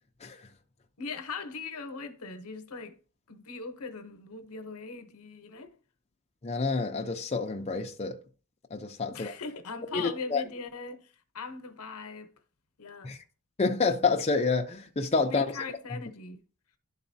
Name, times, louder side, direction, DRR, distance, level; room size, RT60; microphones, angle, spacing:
voice 1, 1.0-3.0 3.3-5.7 9.1-12.3 12.8-13.1 15.2-16.4, left 4 dB, 85° left, 0.9 m, -40 dB
voice 2, 6.4-8.2 8.7-9.3 9.9-10.4 13.0-13.2 13.6-15.6, left 4 dB, 30° left, 0.6 m, -28 dB
11.5 x 4.0 x 2.7 m
head